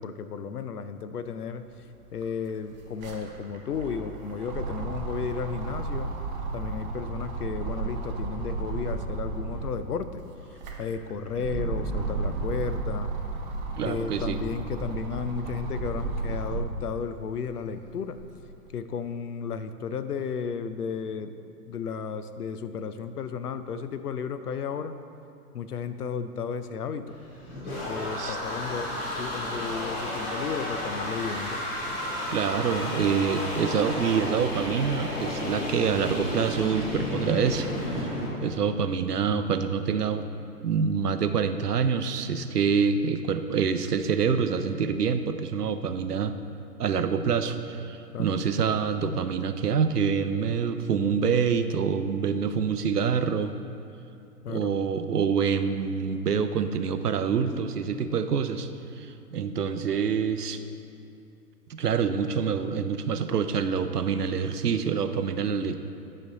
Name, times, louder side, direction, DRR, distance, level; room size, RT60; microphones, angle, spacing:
voice 1, 0.0-1.7 2.1-6.2 6.5-10.2 10.8-13.2 13.8-18.2 18.7-21.4 21.7-25.0 25.5-27.2 27.9-31.6 35.5-35.6 48.1-48.3 54.4-54.7, left 6 dB, 75° left, 11 dB, 0.6 m, -33 dB
sound 1, 1.7-1.8 2.0-9.8 10.3-16.9 17.4-18.5, right 3 dB, 30° right, 0.7 m, -33 dB
voice 2, 13.8-14.4 28.2-28.4 32.3-38.1 38.4-40.2 40.6-46.3 46.8-53.5 54.5-58.7 59.0-60.6 61.7-65.8, right 6 dB, 80° right, 10 dB, 0.6 m, -26 dB
sound 2, 27.1-38.3, left 1 dB, 40° left, 1.8 m, -32 dB
9.9 x 5.1 x 4.0 m, 2.7 s
figure-of-eight pair, 115°, 47 cm